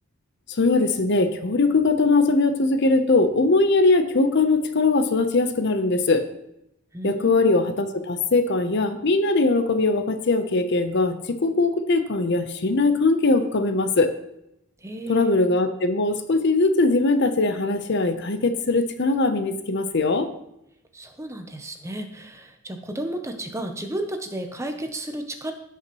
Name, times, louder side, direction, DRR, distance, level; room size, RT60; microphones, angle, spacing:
voice 1, 0.5-6.3 7.0-14.1 15.1-20.3, left 3 dB, 50° left, 9 dB, 0.7 m, -21 dB
voice 2, 6.9-7.5 14.8-15.3 20.9-25.5, right 1 dB, 15° right, 6 dB, 0.7 m, -33 dB
16.5 x 5.8 x 3.0 m, 0.81 s
head